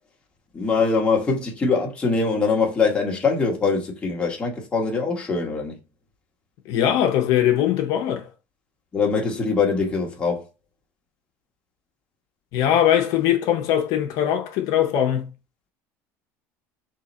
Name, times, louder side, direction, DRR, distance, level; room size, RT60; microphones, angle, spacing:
voice 1, 0.5-5.8 8.9-10.5, left 4 dB, 15° left, 1.1 m, -23 dB
voice 2, 6.7-8.3 12.5-15.3, left 10 dB, 65° left, 0.7 m, -21 dB
3.7 x 2.8 x 4.1 m
cardioid pair, 145°, 7 cm